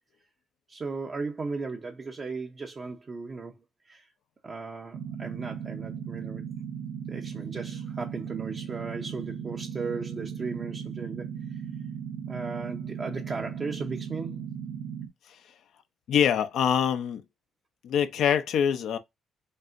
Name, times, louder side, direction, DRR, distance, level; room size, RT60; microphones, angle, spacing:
voice 1, 0.7-3.5 3.9-4.0 4.4-6.4 7.1-11.6 12.3-14.4, right 4 dB, 40° right, 0.7 m, -36 dB
sound 1, 4.9-15.1, right 8 dB, 75° right, 0.9 m, -37 dB
voice 2, 16.1-17.2 17.8-19.0, left 8 dB, 75° left, 0.6 m, -24 dB
5.3 x 2.7 x 2.5 m
cardioid pair, 90°, 0 cm